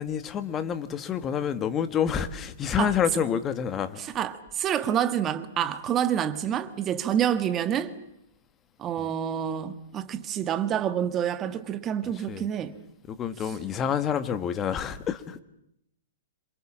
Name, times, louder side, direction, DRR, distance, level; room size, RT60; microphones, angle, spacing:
voice 1, 0.0-4.0 9.0-9.1 12.3-12.5 13.1-15.4, left 8 dB, 20° left, 1.6 m, -28 dB
voice 2, 4.2-7.9 8.8-12.7, right 9 dB, 20° right, 1.6 m, -27 dB
27.5 x 26.5 x 7.4 m
hypercardioid pair, 160°, 0 cm